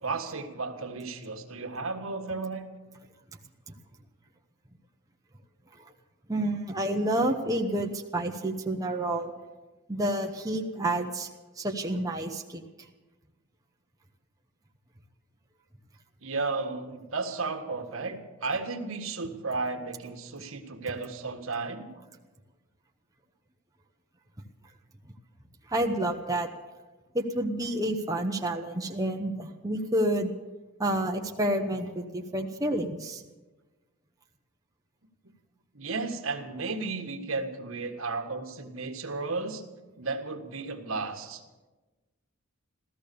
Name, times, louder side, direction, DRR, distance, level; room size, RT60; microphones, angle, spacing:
voice 1, 0.0-2.6 16.2-21.9 35.2-35.3 35.7-39.6 40.0-41.4, right 3 dB, 70° right, 4 dB, 1.6 m, -34 dB
voice 2, 6.3-9.3 9.9-11.3 11.6-12.6 25.7-26.5 27.1-30.3 30.8-33.2, right 1 dB, 15° right, 1 dB, 0.9 m, -29 dB
15.5 x 13.5 x 6.9 m, 1.2 s
head